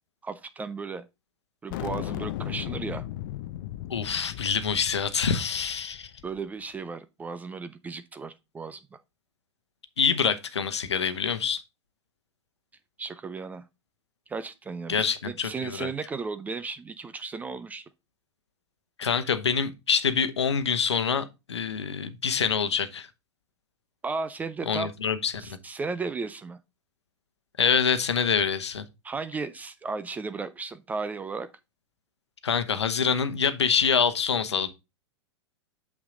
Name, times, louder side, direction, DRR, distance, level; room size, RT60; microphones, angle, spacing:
voice 1, 0.2-1.1 1.6-3.1 6.2-9.0 13.0-13.6 14.3-17.9 24.0-24.9 25.4-26.6 29.0-31.5, right 4 dB, 10° right, 0.4 m, -35 dB
sound 1, 1.7-6.4, left 13 dB, 45° left, 0.5 m, -36 dB
voice 2, 3.9-6.1 10.0-11.6 14.9-15.9 19.0-23.1 24.7-25.3 27.6-28.8 32.4-34.7, left 6 dB, 65° left, 1.0 m, -26 dB
7.2 x 5.7 x 3.8 m
figure-of-eight pair, 100°, 15 cm